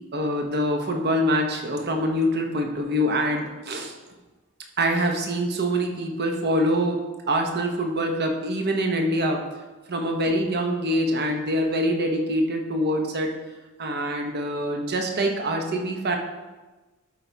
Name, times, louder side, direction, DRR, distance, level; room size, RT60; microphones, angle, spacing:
voice 1, 0.1-3.9 4.8-9.4 9.9-13.3 13.8-16.2, equal, 50° right, 3 dB, 1.1 m, -25 dB
12.0 x 4.7 x 4.0 m, 1.2 s
head